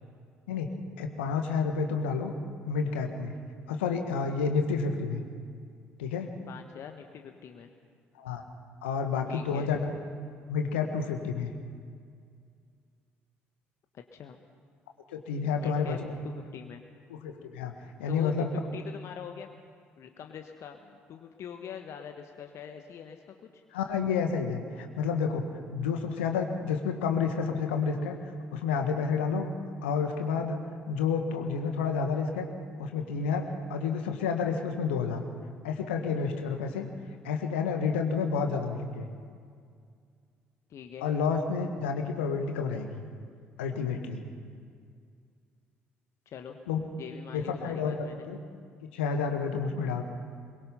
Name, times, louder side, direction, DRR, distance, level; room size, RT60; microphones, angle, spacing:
voice 1, 1.0-2.3 2.7-3.3 3.7-5.2 6.0-6.3 8.2-8.4 8.8-9.9 10.5-11.5 15.1-16.0 17.1-17.7 18.0-18.5 23.7-28.2 28.5-29.5 29.8-30.6 30.9-32.5 32.8-35.2 35.6-36.9 37.2-39.1 41.0-43.0 43.6-44.2 46.7-46.8 47.3-48.4 48.9-50.0, left 5 dB, 75° left, 5 dB, 1.7 m, -30 dB
voice 2, 6.5-7.7 9.3-9.7 13.9-14.4 15.5-16.8 18.1-19.6 20.0-23.6 40.7-41.1 46.3-46.6 47.0-48.3, left 7 dB, 50° left, 5 dB, 1.3 m, -44 dB
22.5 x 22.5 x 5.7 m, 2.1 s
figure-of-eight pair, 50°, 6 cm